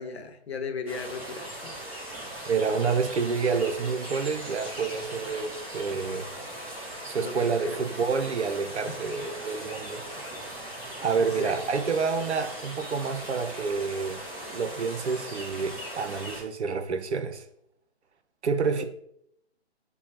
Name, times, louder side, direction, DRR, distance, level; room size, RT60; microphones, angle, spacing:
voice 1, 0.0-1.8 7.2-7.8 8.9-9.1 10.6-10.9 11.2-11.6 18.8-18.9, left 5 dB, 70° left, 0.9 m, -37 dB
sound 1, 0.9-16.4, right 1 dB, 5° right, 0.5 m, -39 dB
voice 2, 2.5-6.3 7.1-10.0 11.0-14.2 14.5-17.4 18.4-18.8, right 5 dB, 80° right, 0.7 m, -28 dB
6.8 x 2.3 x 2.9 m
figure-of-eight pair, 140°, 33 cm